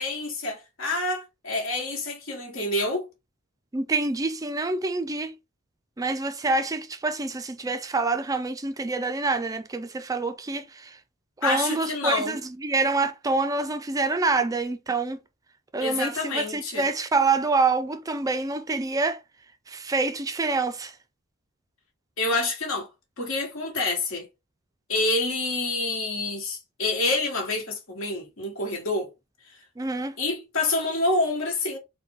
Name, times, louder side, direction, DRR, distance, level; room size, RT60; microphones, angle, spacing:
voice 1, 0.0-3.1 11.4-12.4 15.8-16.9 22.2-22.9 23.2-24.3 24.9-29.1 30.2-31.8, left 2 dB, 70° left, 1.4 m, -27 dB
voice 2, 3.7-5.3 6.0-11.0 11.4-15.2 15.7-19.2 19.7-21.0 29.8-30.2, right 3 dB, 15° right, 0.3 m, -26 dB
4.0 x 2.2 x 3.4 m
head